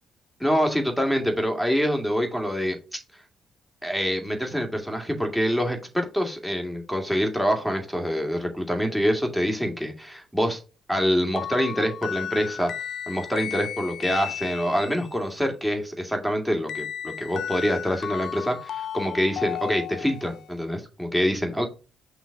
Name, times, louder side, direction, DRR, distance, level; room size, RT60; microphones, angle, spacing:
voice 1, 0.4-3.0 3.8-10.6 10.9-12.7 13.1-21.7, equal, ahead, 3 dB, 2.1 m, -25 dB
sound 1, 11.4-15.1 16.7-20.5, left 10 dB, 60° left, 0.5 m, -34 dB
6.0 x 3.4 x 4.7 m, 0.31 s
hypercardioid pair, 45°, 0 cm